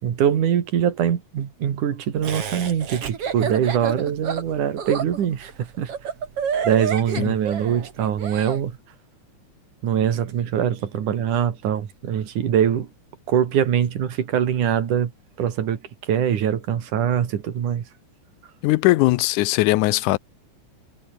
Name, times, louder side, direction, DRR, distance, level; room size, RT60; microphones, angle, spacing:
voice 1, 0.0-5.9 6.6-8.8 9.8-12.9 13.3-15.1 15.4-17.9, right 9 dB, 90° right, 3.7 m, -23 dB
Laughter, 2.2-8.6, right 7 dB, 50° right, 3.3 m, -29 dB
voice 2, 18.6-20.2, left 19 dB, 90° left, 2.2 m, -19 dB
omnidirectional pair, 3.4 m